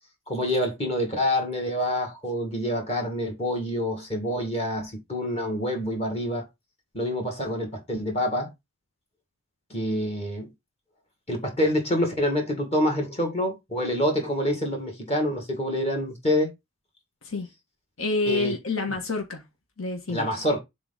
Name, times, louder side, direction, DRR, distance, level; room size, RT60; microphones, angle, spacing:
voice 1, 0.3-6.5 6.9-8.5 9.7-10.5 11.3-16.5 18.3-18.5 18.9-19.0 20.1-20.6, left 1 dB, 30° left, 2.3 m, -27 dB
voice 2, 18.0-19.4 19.8-20.3, left 3 dB, 70° left, 1.6 m, -28 dB
7.1 x 4.0 x 4.0 m
head